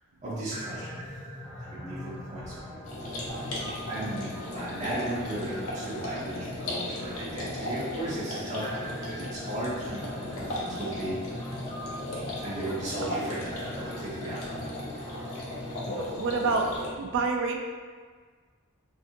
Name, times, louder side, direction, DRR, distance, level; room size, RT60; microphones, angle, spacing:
voice 1, 0.2-1.0 1.6-2.8 3.1-3.2 3.9-11.4 12.4-14.6, right 1 dB, 35° right, -9 dB, 0.8 m, -36 dB
sound 1, 0.5-16.7, left 1 dB, 20° left, 0.6 m, -42 dB
sound 2, 2.8-16.9, left 1 dB, 80° left, 0.7 m, -37 dB
voice 2, 16.0-17.6, right 3 dB, 60° right, 2 dB, 0.3 m, -29 dB
2.6 x 2.5 x 2.5 m, 1.5 s
head